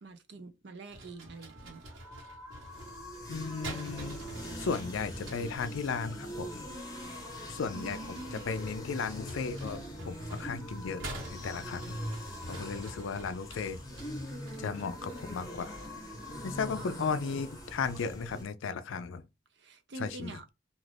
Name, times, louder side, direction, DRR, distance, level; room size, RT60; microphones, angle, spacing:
voice 1, 0.0-1.8 7.7-8.5 16.4-16.5 16.8-17.2 19.5-20.5, right 3 dB, 60° right, 0.5 m, -46 dB
sound 1, 0.9-5.7 7.5-16.1, right 1 dB, 75° right, 1.2 m, -47 dB
sound 2, 1.0-18.0, left 2 dB, 5° right, 0.9 m, -52 dB
sound 3, 2.5-18.4, equal, 20° left, 0.8 m, -43 dB
voice 2, 3.3-4.2 4.6-6.6 7.5-12.0 12.5-13.8 14.6-15.8 16.4-19.2 20.0-20.3, left 5 dB, 80° left, 0.4 m, -35 dB
2.5 x 2.4 x 3.3 m
head